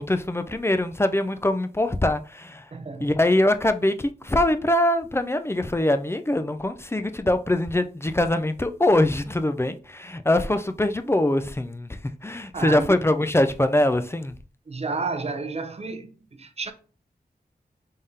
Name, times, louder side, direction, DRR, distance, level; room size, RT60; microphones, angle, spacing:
voice 1, 0.0-2.7 3.0-14.4, left 1 dB, 15° left, 0.4 m, -23 dB
voice 2, 2.7-3.1 12.5-12.9 14.7-16.7, right 4 dB, 40° right, 0.6 m, -31 dB
3.6 x 3.5 x 2.7 m
wide cardioid pair, 60°, 17 cm